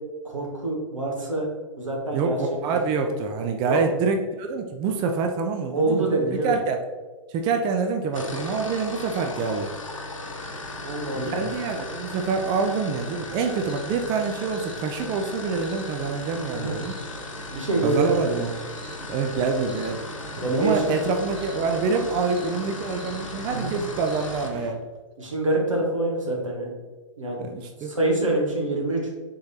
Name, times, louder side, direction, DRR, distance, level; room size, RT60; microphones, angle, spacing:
voice 1, 0.2-1.5 1.8-2.4 3.7-4.0 5.7-6.5 10.8-11.5 16.5-16.8 17.5-18.1 20.4-21.0 23.5-23.7 25.2-26.7 27.2-27.5 27.8-29.1, right 2 dB, 85° right, -1 dB, 1.3 m, -25 dB
voice 2, 2.1-6.8 7.3-9.7 11.1-17.0 17.8-18.5 19.1-20.0 20.4-24.8 27.4-28.0, right 4 dB, 25° right, 4 dB, 0.4 m, -26 dB
sound 1, 8.0-24.6, left 2 dB, 90° left, 0.7 m, -37 dB
sound 2, 10.2-24.7, equal, 5° right, 1.2 m, -42 dB
3.8 x 3.2 x 4.0 m, 1.3 s
hypercardioid pair, 115°, 16 cm